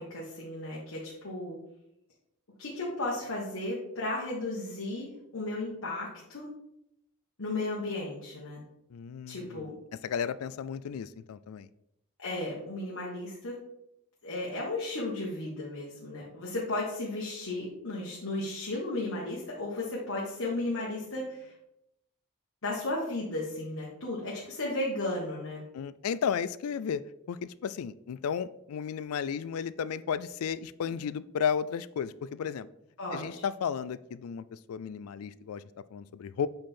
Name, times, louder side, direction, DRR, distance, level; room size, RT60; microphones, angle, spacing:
voice 1, 0.0-1.6 2.6-6.5 7.4-8.6 9.3-9.7 12.2-13.6 14.2-21.5 22.6-25.6 33.0-33.4, left 2 dB, 70° left, -5 dB, 1.4 m, -34 dB
voice 2, 8.9-9.7 10.0-11.7 25.7-27.0 27.3-32.7 33.1-35.6 35.9-36.5, left 7 dB, 90° left, 17 dB, 0.3 m, -33 dB
7.7 x 4.3 x 3.7 m, 0.82 s
head